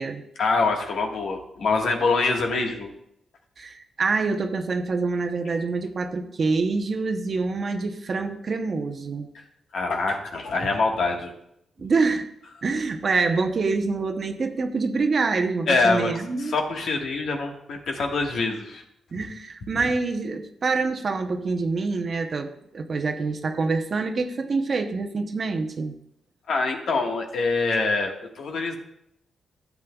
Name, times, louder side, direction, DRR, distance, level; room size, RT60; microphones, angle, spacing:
voice 1, 0.4-2.9 9.3-9.4 9.7-11.3 15.7-18.8 26.5-28.8, left 3 dB, 60° left, 2 dB, 1.5 m, -25 dB
voice 2, 3.6-9.3 11.8-12.3 12.6-16.5 19.1-25.9, right 4 dB, 35° right, 5 dB, 0.8 m, -26 dB
14.5 x 8.3 x 2.3 m, 0.75 s
wide cardioid pair, 150°, 0 cm